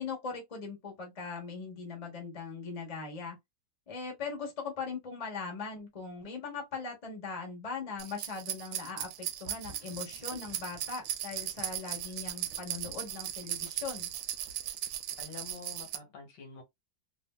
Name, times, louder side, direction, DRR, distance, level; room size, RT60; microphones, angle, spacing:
voice 1, 0.0-3.4 3.9-14.1, left 5 dB, 30° left, 0.8 m, -40 dB
sound 1, 8.0-16.0, right 11 dB, 85° right, 1.3 m, -38 dB
voice 2, 15.2-16.6, left 5 dB, 65° left, 1.6 m, -47 dB
3.3 x 2.4 x 2.2 m
omnidirectional pair, 2.1 m